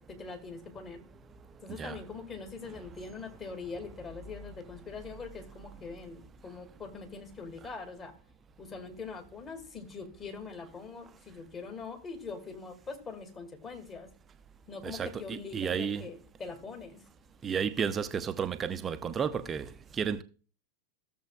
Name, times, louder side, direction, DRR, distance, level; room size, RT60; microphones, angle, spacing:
voice 1, 0.1-1.0 1.6-8.1 8.6-14.1 14.7-17.0, left 4 dB, 25° left, 2.1 m, -43 dB
voice 2, 14.8-16.0 17.4-19.7 20.0-20.2, right 7 dB, 20° right, 0.6 m, -32 dB
15.5 x 7.1 x 2.3 m
figure-of-eight pair, 90°, 0 cm